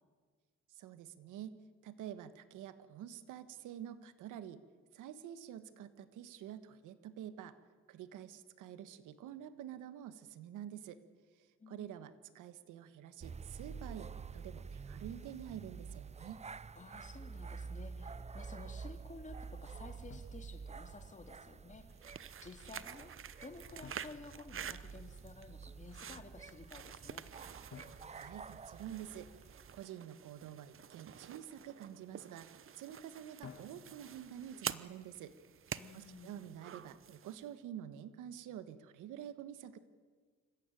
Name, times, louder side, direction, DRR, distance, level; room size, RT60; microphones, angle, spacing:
voice 1, 0.7-1.6 1.8-4.6 4.9-7.6 7.9-11.0 11.7-16.4 28.1-29.3 29.7-35.3 35.9-39.8, right 10 dB, 90° right, 12 dB, 1.4 m, -48 dB
sound 1, 13.2-29.8, right 5 dB, 20° right, 0.6 m, -49 dB
voice 2, 16.8-22.0 22.4-23.1 23.4-27.3 35.8-36.5, left 3 dB, 25° left, 6 dB, 2.4 m, -53 dB
Drum, 17.6-17.9 20.1-21.2 23.8-25.2 27.7-29.4 33.4-34.4, left 6 dB, 45° left, 2.7 m, -57 dB
sound 2, 21.9-37.5, right 8 dB, 45° right, 0.9 m, -49 dB
26.5 x 15.0 x 9.2 m, 1.5 s
cardioid pair, 90°, 30 cm